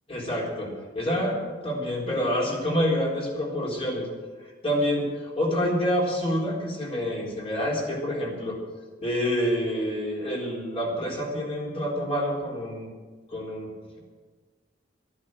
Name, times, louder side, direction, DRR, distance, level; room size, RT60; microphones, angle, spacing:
voice 1, 0.1-4.1 4.4-8.6 9.0-12.9 13.3-13.7, equal, 30° left, -3 dB, 3.9 m, -27 dB
12.5 x 11.0 x 7.6 m, 1.4 s
head